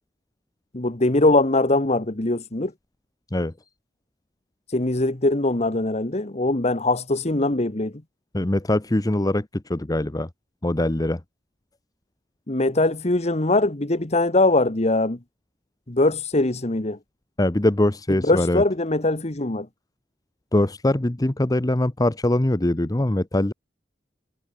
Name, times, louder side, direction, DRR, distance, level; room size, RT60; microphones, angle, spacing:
voice 1, 0.7-2.7 4.7-7.9 12.5-15.2 15.9-17.0 18.2-19.7, left 2 dB, 40° left, 1.5 m, -21 dB
voice 2, 8.3-10.3 10.6-11.2 17.4-18.6 20.5-23.5, left 1 dB, 20° left, 0.8 m, -22 dB
head